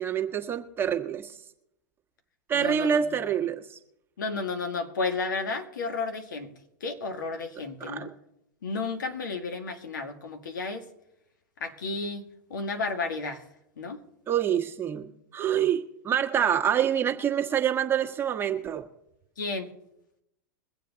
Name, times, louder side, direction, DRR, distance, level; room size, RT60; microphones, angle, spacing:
voice 1, 0.0-1.4 2.5-3.8 7.8-8.1 14.3-18.8, right 9 dB, 20° right, 2 dB, 1.4 m, -26 dB
voice 2, 2.5-3.0 4.2-6.5 6.8-8.1 8.6-10.9 11.6-13.4 13.8-14.0 19.4-19.7, left 4 dB, 85° left, 6 dB, 1.8 m, -32 dB
22.5 x 7.6 x 4.0 m, 0.82 s
hypercardioid pair, 115°, 10 cm